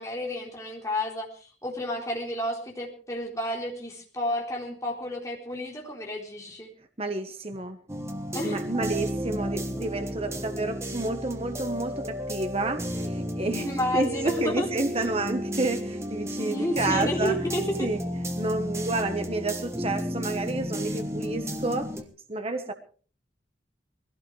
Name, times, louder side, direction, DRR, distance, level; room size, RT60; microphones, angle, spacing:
voice 1, 0.0-6.7 8.3-8.6 13.5-14.7 16.5-17.6, left 1 dB, 15° left, -1 dB, 4.0 m, -31 dB
voice 2, 7.0-7.8 8.4-13.7 13.9-17.4 17.8-21.9 22.3-22.7, right 2 dB, 35° right, 6 dB, 1.4 m, -30 dB
sound 1, 7.9-22.0, equal, 15° right, 1.4 m, -32 dB
21.0 x 16.5 x 3.4 m, 0.41 s
head